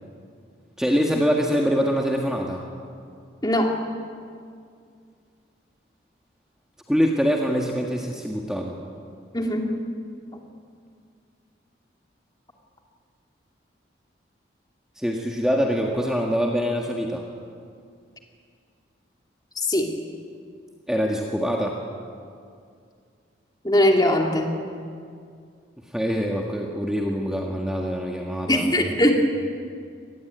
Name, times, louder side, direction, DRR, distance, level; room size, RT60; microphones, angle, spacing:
voice 1, 0.8-2.6 6.9-8.8 15.0-17.2 20.9-21.8 25.9-28.9, equal, 5° right, 0 dB, 1.7 m, -24 dB
voice 2, 3.4-3.7 9.3-9.7 19.7-19.9 23.6-24.6 28.5-29.2, left 1 dB, 20° left, 2 dB, 2.7 m, -20 dB
25.5 x 19.5 x 9.3 m, 2.3 s
head